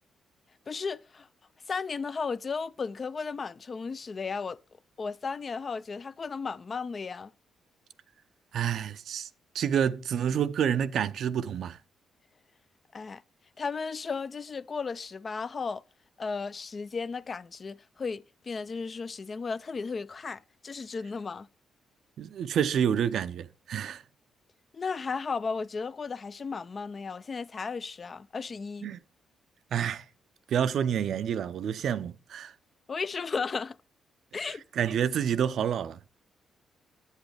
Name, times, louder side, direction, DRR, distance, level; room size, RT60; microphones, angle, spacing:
voice 1, 0.7-1.3 1.7-4.6 5.0-7.3 12.9-13.2 13.6-15.8 16.2-21.5 24.7-28.9 32.9-33.8 34.3-34.6, left 5 dB, 45° left, 0.4 m, -35 dB
voice 2, 8.5-9.3 9.5-11.8 22.2-24.0 28.8-29.0 29.7-30.0 30.5-32.5 34.7-36.0, right 8 dB, 70° right, 0.5 m, -28 dB
8.2 x 7.9 x 3.3 m
supercardioid pair, 65°, 0 cm